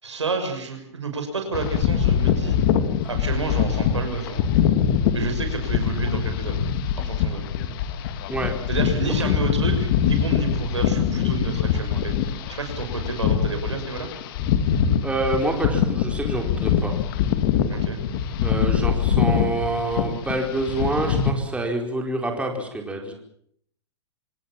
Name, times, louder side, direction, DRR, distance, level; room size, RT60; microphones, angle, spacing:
voice 1, 0.0-2.6 3.0-4.5 5.1-6.6 6.9-7.4 8.7-12.1 12.5-14.1 17.7-18.0, right 4 dB, 85° right, 5 dB, 6.5 m, -30 dB
sound 1, 1.5-21.3, left 8 dB, 50° left, 2.5 m, -23 dB
voice 2, 15.0-17.0 18.4-23.1, right 2 dB, 10° right, 2 dB, 4.6 m, -27 dB
26.5 x 18.5 x 7.4 m, 0.68 s
hypercardioid pair, 115°, 15 cm